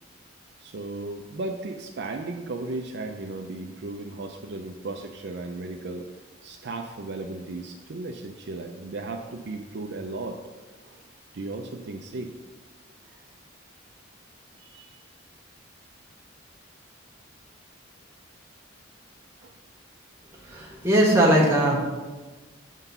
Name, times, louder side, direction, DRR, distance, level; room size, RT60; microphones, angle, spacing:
voice 1, 0.6-6.1 6.4-10.4 10.8-11.0 11.3-12.3 14.6-15.0 19.4-19.5, right 2 dB, 55° right, 3 dB, 0.4 m, -35 dB
voice 2, 20.5-21.8, right 1 dB, 10° right, -4 dB, 1.4 m, -20 dB
8.0 x 3.8 x 5.6 m, 1.3 s
head